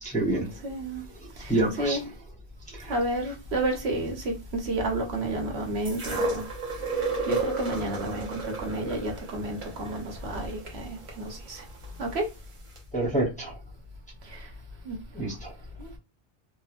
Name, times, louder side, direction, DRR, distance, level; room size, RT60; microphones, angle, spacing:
voice 1, 0.0-0.6 1.5-2.0 2.7-2.9 12.9-13.5 15.1-15.5, right 2 dB, 10° left, 0.7 m, -27 dB
voice 2, 0.6-1.0 1.4-2.0 2.9-6.5 7.0-11.6 12.0-12.3 14.3-14.5 14.8-15.0 15.8-15.9, right 1 dB, 75° right, 1.1 m, -31 dB
sound 1, 5.8-11.9 12.8-12.9, right 3 dB, 35° right, 0.7 m, -33 dB
3.0 x 2.2 x 2.4 m
omnidirectional pair, 1.1 m